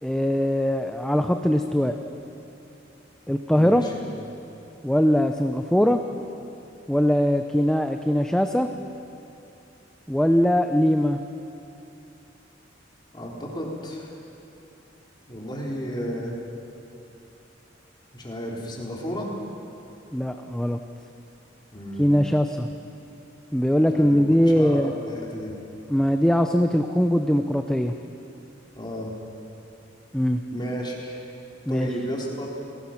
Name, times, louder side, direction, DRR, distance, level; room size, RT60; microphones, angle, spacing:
voice 1, 0.0-1.9 3.3-3.8 4.8-6.0 6.9-8.7 10.1-11.2 20.1-20.8 22.0-22.7 23.5-24.9 25.9-27.9 30.1-30.4 31.7-31.9, equal, 5° left, 6 dB, 0.6 m, -21 dB
voice 2, 3.5-3.9 13.1-14.1 15.3-16.4 18.1-19.3 21.7-22.1 23.9-25.5 28.7-29.1 30.5-31.2 31.7-32.5, equal, 25° left, -2 dB, 3.7 m, -33 dB
30.0 x 18.0 x 5.9 m, 2.8 s
head